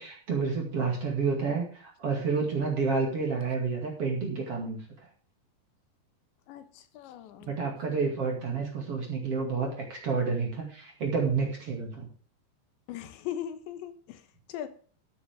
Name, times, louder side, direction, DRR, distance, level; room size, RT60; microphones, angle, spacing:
voice 1, 0.0-4.8 7.5-12.1, right 4 dB, 40° right, 0 dB, 2.6 m, -29 dB
voice 2, 6.5-7.5 12.9-14.7, left 10 dB, 90° left, 10 dB, 3.5 m, -39 dB
12.5 x 10.0 x 3.6 m, 0.42 s
omnidirectional pair, 5.1 m